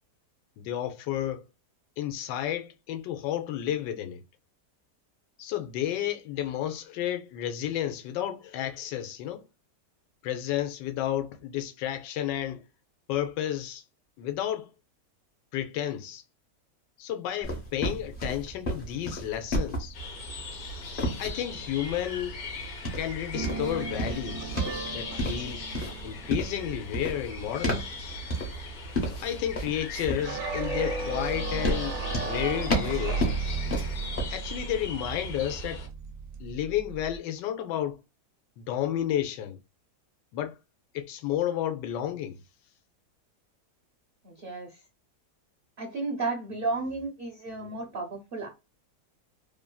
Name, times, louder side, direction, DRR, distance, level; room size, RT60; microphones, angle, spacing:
voice 1, 0.6-1.5 2.0-4.2 5.4-9.4 10.2-12.7 13.1-13.8 14.2-14.7 15.5-16.2 17.0-20.0 21.2-22.4 22.9-24.6 24.9-25.7 26.0-27.9 29.2-33.3 34.3-35.9 36.4-38.0 38.6-39.6 40.3-40.6 40.9-42.4, left 11 dB, 85° left, 1.2 m, -32 dB
sound 1, 17.4-34.2, equal, 40° left, 0.8 m, -34 dB
sound 2, 19.9-35.9, left 2 dB, 60° left, 1.1 m, -40 dB
sound 3, 23.3-26.3 30.1-37.2, right 4 dB, 70° right, 1.0 m, -35 dB
voice 2, 44.2-44.8 45.8-48.5, right 3 dB, 55° right, 0.6 m, -33 dB
3.0 x 2.5 x 2.2 m
omnidirectional pair, 1.9 m